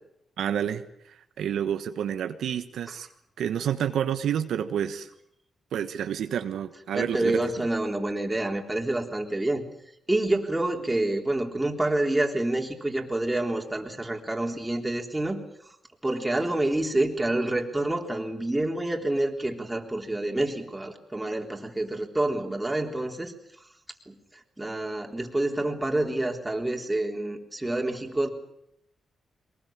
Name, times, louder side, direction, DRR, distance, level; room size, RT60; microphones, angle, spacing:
voice 1, 0.4-3.1 3.4-5.1 5.7-7.4, right 9 dB, 80° right, 8 dB, 1.3 m, -29 dB
voice 2, 6.9-9.6 10.1-15.4 15.7-15.8 16.0-23.3 24.1-28.3, right 1 dB, 15° right, 2 dB, 3.8 m, -28 dB
22.5 x 20.5 x 8.9 m, 0.76 s
cardioid pair, 90°, 0 cm